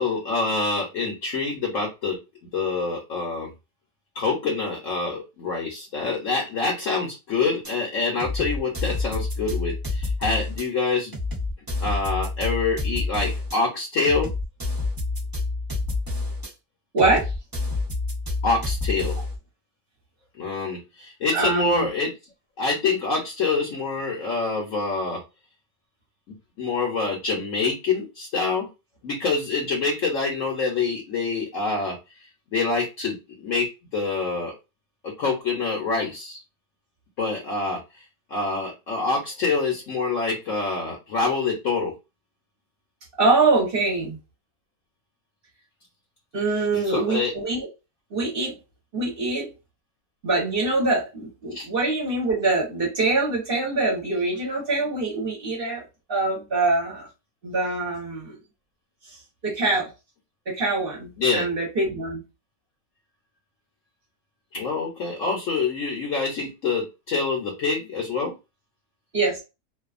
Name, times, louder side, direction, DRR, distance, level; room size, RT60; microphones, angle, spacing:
voice 1, 0.0-2.2 2.5-3.5 4.1-11.1 11.8-14.3 18.4-19.1 20.4-22.1 22.6-25.2 26.6-28.7 29.0-32.0 32.5-34.5 35.2-36.4 37.2-37.8 38.3-41.9 46.7-47.3 51.5-51.7 61.2-61.4 64.5-68.3, left 4 dB, 60° left, 0.9 m, -26 dB
sound 1, 7.6-7.7 8.2-10.6 11.1-13.6 14.0-16.5 17.0-19.4, left 3 dB, 25° right, 0.4 m, -28 dB
voice 2, 16.9-17.3 21.3-21.9 43.2-44.2 46.3-47.7 48.1-48.6 48.9-49.5 50.2-57.1 57.4-58.4 59.0-59.9 60.5-62.2 69.1-69.4, right 3 dB, 40° right, 1.0 m, -24 dB
2.7 x 2.3 x 2.4 m
omnidirectional pair, 1.8 m